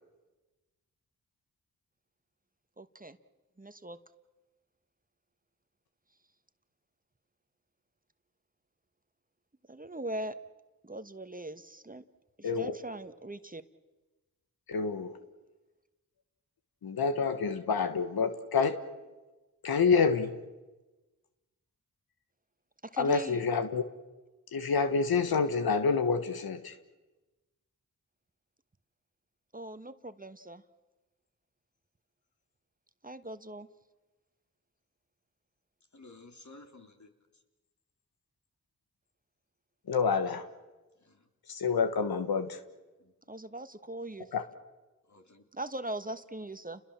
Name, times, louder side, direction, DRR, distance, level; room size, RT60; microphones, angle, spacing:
voice 1, 2.8-3.2 3.6-4.0 9.7-10.4 10.8-12.0 12.4-13.6 22.8-23.4 29.5-30.6 33.0-33.7 43.3-44.3 45.5-46.8, right 1 dB, 25° right, 1.4 m, -40 dB
voice 2, 12.4-12.7 14.7-15.2 16.8-18.8 19.6-20.4 23.0-23.8 24.5-26.8 39.8-40.5 41.4-42.6 44.3-44.4, left 5 dB, 85° left, 1.4 m, -28 dB
voice 3, 35.9-37.4 41.0-41.3 43.0-43.1 45.1-45.5, left 2 dB, 50° left, 3.8 m, -54 dB
30.0 x 21.5 x 7.4 m
cardioid pair, 45°, 36 cm